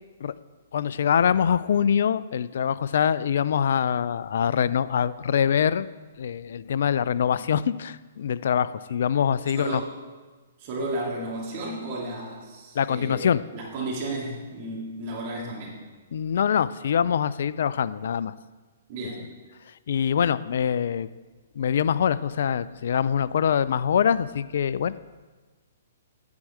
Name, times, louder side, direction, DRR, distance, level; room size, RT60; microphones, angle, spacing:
voice 1, 0.7-5.9 6.2-9.8 12.8-13.4 16.1-18.3 19.9-21.1 21.6-24.9, left 8 dB, 65° left, 17 dB, 0.3 m, -24 dB
voice 2, 9.5-9.9 10.6-15.8 18.9-19.3, right 2 dB, 45° right, -4 dB, 2.5 m, -33 dB
9.6 x 4.7 x 7.4 m, 1.3 s
hypercardioid pair, 130°, 0 cm